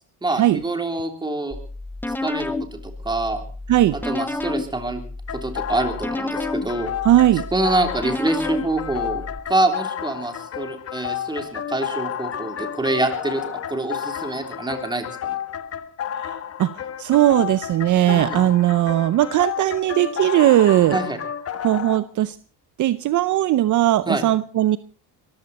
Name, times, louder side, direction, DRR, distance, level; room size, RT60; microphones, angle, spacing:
voice 1, 0.2-1.5 2.1-3.4 3.9-5.0 5.3-6.9 7.5-9.2 9.5-13.4 13.7-15.4 18.1-18.5 20.9-21.2 24.1-24.2, right 2 dB, 10° right, 5 dB, 3.3 m, -25 dB
sound 1, 1.5-9.4, left 2 dB, 5° left, 0.9 m, -31 dB
sound 2, 5.3-22.0, left 9 dB, 40° left, 1.3 m, -31 dB
voice 2, 7.0-7.4 16.1-16.7 17.0-21.0 21.6-22.4 22.8-24.8, right 13 dB, 50° right, 15 dB, 0.7 m, -18 dB
22.0 x 15.0 x 4.2 m, 0.38 s
cardioid pair, 120°, 37 cm